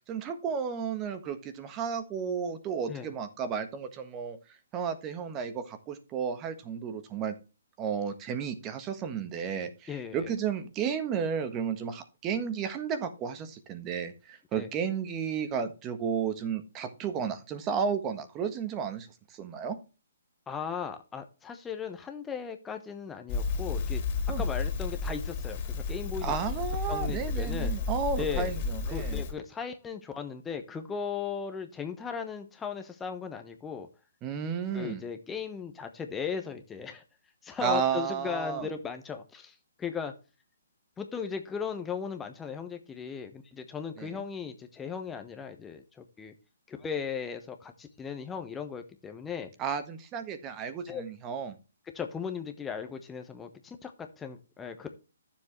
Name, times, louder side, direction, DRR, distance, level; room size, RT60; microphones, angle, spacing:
voice 1, 0.1-4.4 4.7-7.3 7.8-19.8 24.3-24.4 26.2-29.2 34.2-35.0 37.6-38.7 44.0-44.2 49.6-51.6, right 7 dB, 25° right, 9 dB, 1.4 m, -33 dB
voice 2, 9.9-10.3 14.6-14.7 20.5-24.0 24.4-26.4 26.9-27.8 28.2-28.5 28.9-33.9 34.7-37.0 37.4-40.1 41.0-46.3 46.7-49.5 50.9-51.0 51.9-54.9, left 6 dB, 10° left, 6 dB, 1.1 m, -37 dB
Crackle, 23.3-29.3, left 4 dB, 35° left, 3.1 m, -32 dB
13.0 x 7.4 x 3.2 m, 0.32 s
figure-of-eight pair, 135°, 0 cm